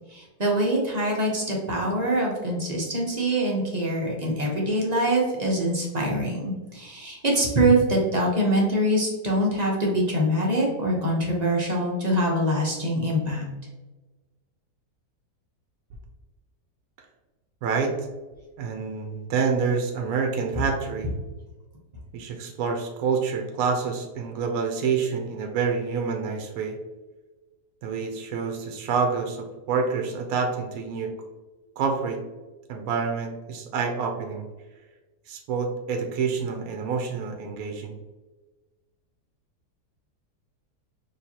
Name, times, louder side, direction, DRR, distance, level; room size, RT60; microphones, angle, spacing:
voice 1, 0.1-13.4, right 1 dB, 35° right, -3 dB, 0.7 m, -24 dB
voice 2, 17.6-17.9 18.6-21.1 22.1-26.8 27.8-31.1 31.8-32.2 32.7-34.5 35.3-37.9, right 5 dB, 70° right, 3 dB, 1.0 m, -27 dB
4.5 x 3.1 x 2.8 m, 1.2 s
omnidirectional pair, 1.7 m